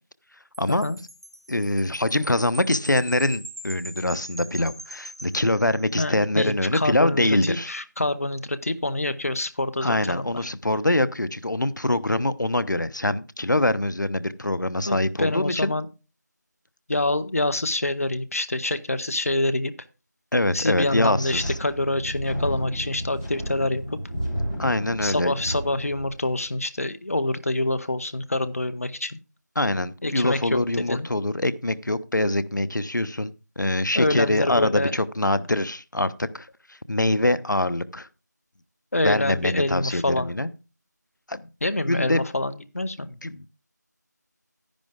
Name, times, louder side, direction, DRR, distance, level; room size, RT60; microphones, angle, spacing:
Wind chime, 0.5-6.2, right 1 dB, 15° right, 0.7 m, -42 dB
voice 1, 1.5-7.7 9.8-15.7 20.3-21.5 24.6-25.3 29.6-38.1 39.0-40.5 41.3-41.4 41.9-42.2 43.0-43.5, left 1 dB, 80° left, 0.9 m, -24 dB
voice 2, 6.0-10.5 14.9-15.9 16.9-19.7 20.5-24.0 25.0-29.2 30.0-30.6 30.9-31.1 33.9-34.9 38.9-40.3 41.6-43.1, left 2 dB, 50° left, 0.8 m, -26 dB
Wind, 20.8-26.4, equal, 5° left, 1.7 m, -33 dB
10.5 x 10.5 x 3.6 m
figure-of-eight pair, 175°, 10 cm